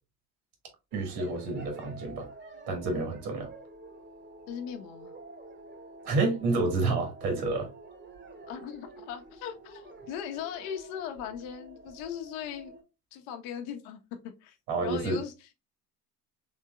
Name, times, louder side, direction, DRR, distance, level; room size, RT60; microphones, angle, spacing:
sound 1, 0.9-12.8, right 3 dB, 25° right, 1.0 m, -49 dB
voice 1, 0.9-2.3 2.7-3.5 6.0-7.7 14.7-15.2, right 3 dB, 70° right, 2.0 m, -29 dB
voice 2, 4.5-5.1 8.5-12.8 13.1-14.6 14.8-15.6, left 9 dB, 60° left, 1.0 m, -39 dB
4.7 x 3.6 x 2.4 m
hypercardioid pair, 65°, 47 cm